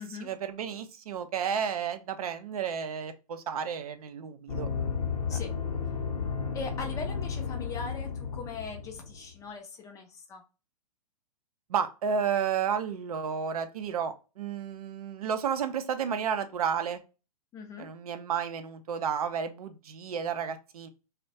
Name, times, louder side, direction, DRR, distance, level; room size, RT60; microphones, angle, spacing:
voice 1, 0.0-4.7 5.3-5.4 11.7-17.0 17.8-20.9, right 7 dB, 65° right, 10 dB, 0.4 m, -32 dB
sound 1, 4.5-9.4, left 6 dB, 60° left, 0.6 m, -33 dB
voice 2, 6.5-10.4 17.5-17.9, left 5 dB, 15° left, 3 dB, 0.4 m, -40 dB
2.2 x 2.1 x 2.6 m, 0.32 s
hypercardioid pair, 115°, 20 cm